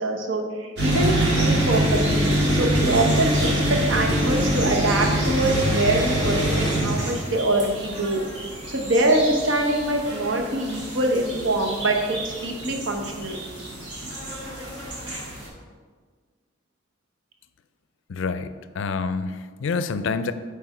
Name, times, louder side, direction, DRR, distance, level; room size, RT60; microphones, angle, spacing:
voice 1, 0.0-3.3 3.7-8.2 8.7-13.4, right 2 dB, 75° right, 2 dB, 1.0 m, -24 dB
sound 1, 0.8-15.5, right 1 dB, 60° right, 1.9 m, -25 dB
voice 2, 18.1-20.3, left 4 dB, 70° left, 12 dB, 0.4 m, -27 dB
8.7 x 3.4 x 5.0 m, 1.5 s
head